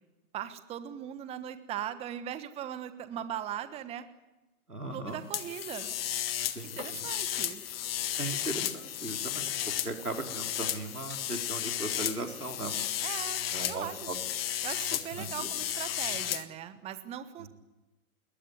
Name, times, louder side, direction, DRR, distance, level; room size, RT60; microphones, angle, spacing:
voice 1, 0.3-4.0 4.9-5.9 6.8-7.6 13.0-14.0 14.6-17.5, right 10 dB, 15° right, 11 dB, 1.3 m, -39 dB
voice 2, 4.7-5.2 6.5-7.0 8.2-12.8 13.5-14.2 15.1-15.5 17.4-17.5, right 2 dB, 90° right, 3 dB, 4.5 m, -38 dB
sound 1, 5.3-16.4, left 11 dB, 40° left, 1.6 m, -34 dB
27.0 x 21.5 x 9.8 m, 1.1 s
figure-of-eight pair, 125°, 44 cm